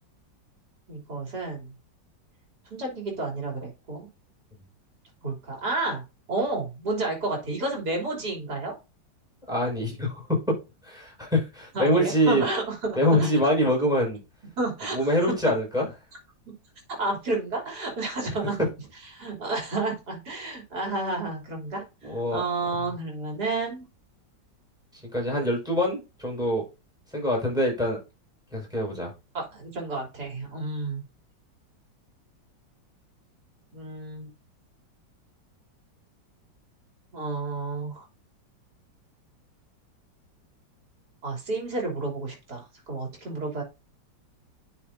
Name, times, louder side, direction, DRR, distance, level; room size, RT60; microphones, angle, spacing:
voice 1, 0.9-1.7 2.7-4.1 5.2-6.0 6.3-8.7 11.7-12.8 13.2-13.3 14.6-15.1 17.0-18.6 19.1-21.8 22.1-23.9 29.3-31.0 33.7-34.3 37.1-38.1 41.2-43.6, right 2 dB, 60° right, 0 dB, 3.9 m, -31 dB
voice 2, 9.5-10.2 10.8-12.5 13.0-14.2 14.9-15.9 22.0-22.4 25.1-26.6 27.1-28.0 28.5-29.1, equal, ahead, 0 dB, 5.2 m, -24 dB
10.0 x 5.6 x 2.6 m, 0.27 s
omnidirectional pair, 2.0 m